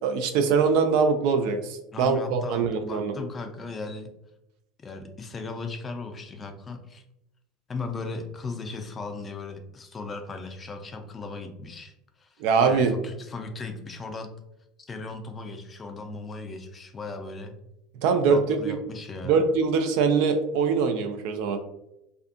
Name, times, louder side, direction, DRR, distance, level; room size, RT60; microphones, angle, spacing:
voice 1, 0.0-3.1 12.4-12.9 18.0-18.7 19.2-21.6, right 5 dB, 65° right, 7 dB, 0.3 m, -23 dB
voice 2, 1.9-4.1 4.8-7.0 7.7-11.9 12.2-12.3 12.7-14.3 14.8-17.5 18.3-19.4, left 3 dB, 30° left, 5 dB, 0.4 m, -37 dB
2.6 x 2.5 x 2.4 m, 0.86 s
hypercardioid pair, 80°, 0 cm